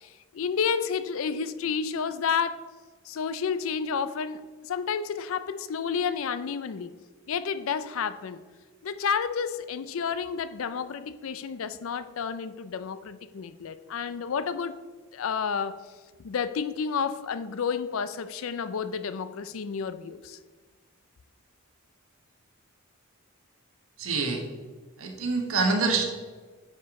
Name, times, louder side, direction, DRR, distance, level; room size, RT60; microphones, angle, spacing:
voice 1, 0.0-2.6 3.1-6.9 7.3-8.4 8.8-14.8 15.1-15.8 16.2-20.4, left 6 dB, 65° left, 0.4 m, -30 dB
voice 2, 24.0-24.4 25.0-26.0, right 4 dB, 70° right, 1.2 m, -25 dB
9.4 x 4.8 x 3.6 m
head